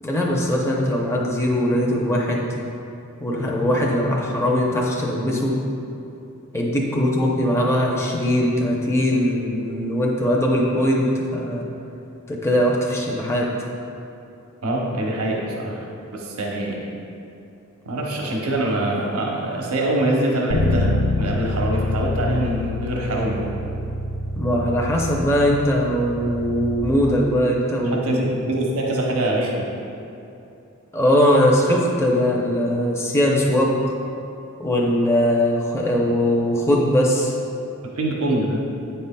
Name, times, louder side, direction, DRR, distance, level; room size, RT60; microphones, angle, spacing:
voice 1, 0.0-2.5 3.2-5.6 6.5-11.6 12.3-13.5 24.3-28.1 30.9-33.8 34.6-37.3, equal, 10° left, -3 dB, 0.6 m, -20 dB
voice 2, 14.6-15.8 16.1-16.8 17.8-23.5 27.8-29.6 37.9-38.7, right 1 dB, 80° right, -2 dB, 0.8 m, -24 dB
Bass guitar, 20.5-26.7, left 1 dB, 80° left, 0.6 m, -26 dB
8.6 x 5.5 x 2.2 m, 2.8 s
head